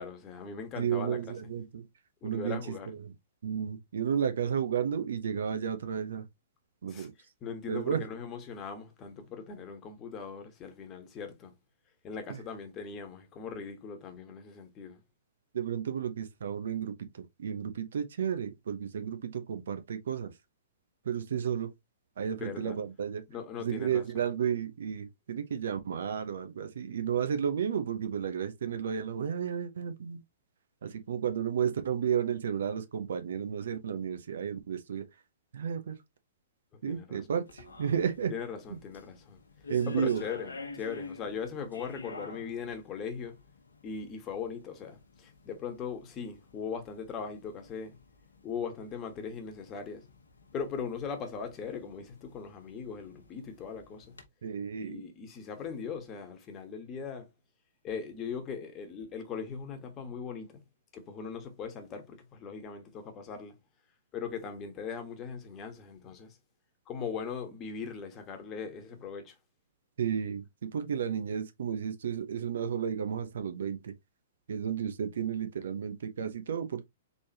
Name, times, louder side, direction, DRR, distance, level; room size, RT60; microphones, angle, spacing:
voice 1, 0.0-1.3 2.2-2.9 6.9-7.1 7.4-11.5 12.0-15.0 22.4-22.8 23.3-24.0 36.8-37.2 38.3-39.4 39.9-43.4 43.8-48.0 48.4-50.0 50.5-54.1 54.7-57.3 57.8-60.6 60.9-63.5 64.1-66.4 66.9-69.4, left 6 dB, 25° left, 1.3 m, -39 dB
voice 2, 0.8-1.8 2.2-2.6 2.9-3.1 3.4-6.2 6.8-7.1 7.7-8.0 12.3-12.4 15.5-20.3 21.0-21.7 22.2-23.2 23.6-30.2 30.8-35.1 35.5-35.9 36.8-38.3 38.7-38.8 39.7-40.2 54.4-55.0 70.0-73.9 74.5-76.8, right 8 dB, 65° right, 0.8 m, -32 dB
sound 1, 37.5-54.3, left 4 dB, 80° left, 1.1 m, -49 dB
4.2 x 3.4 x 2.9 m
figure-of-eight pair, 115°, 0 cm